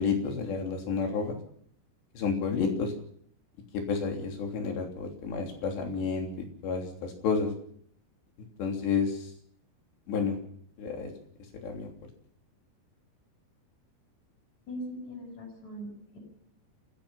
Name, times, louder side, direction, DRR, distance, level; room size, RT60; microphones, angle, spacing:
voice 1, 0.0-1.4 2.2-2.9 3.7-7.5 8.6-9.3 10.1-10.4 10.8-11.1 11.6-11.9, left 5 dB, 70° left, 3 dB, 5.4 m, -30 dB
voice 2, 14.7-16.2, equal, 40° left, 0 dB, 7.4 m, -40 dB
29.0 x 15.5 x 5.8 m, 0.64 s
omnidirectional pair, 5.1 m